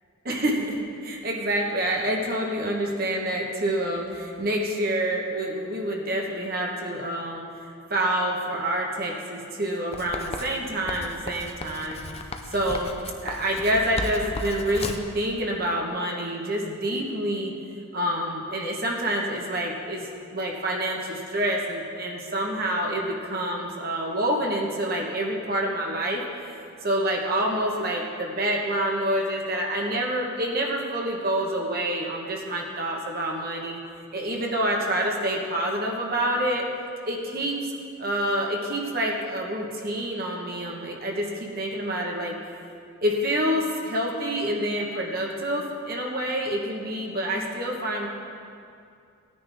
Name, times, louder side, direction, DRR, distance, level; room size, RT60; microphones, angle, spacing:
voice 1, 0.2-7.4 7.9-12.0 12.5-17.5 17.9-20.0 20.3-26.2 26.8-33.8 34.1-36.6 37.1-37.5 38.0-42.4 43.0-48.1, right 1 dB, 45° right, -1 dB, 1.3 m, -27 dB
Writing, 9.9-15.1, left 3 dB, 30° left, 0.5 m, -35 dB
18.0 x 9.7 x 3.5 m, 2.4 s
head